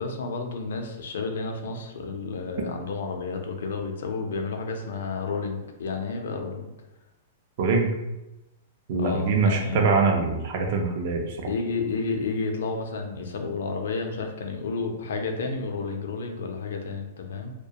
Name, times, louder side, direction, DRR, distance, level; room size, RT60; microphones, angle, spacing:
voice 1, 0.0-6.7 9.0-9.9 11.5-17.5, left 4 dB, 80° left, 4 dB, 0.4 m, -31 dB
voice 2, 7.6-7.9 8.9-11.5, right 4 dB, 50° right, 2 dB, 0.5 m, -23 dB
2.3 x 2.1 x 2.8 m, 0.95 s
hypercardioid pair, 150°, 0 cm